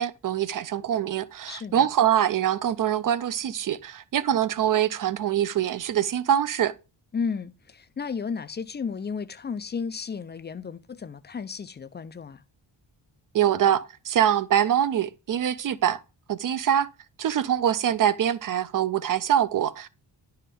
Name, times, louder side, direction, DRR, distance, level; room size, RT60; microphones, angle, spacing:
voice 1, 0.0-6.7 13.3-16.0 16.3-16.9 17.2-19.9, right 10 dB, 45° right, 0.5 m, -24 dB
voice 2, 1.5-1.9 7.1-12.4, left 5 dB, 25° left, 0.3 m, -33 dB
10.0 x 4.3 x 3.6 m
wide cardioid pair, 130°, 45 cm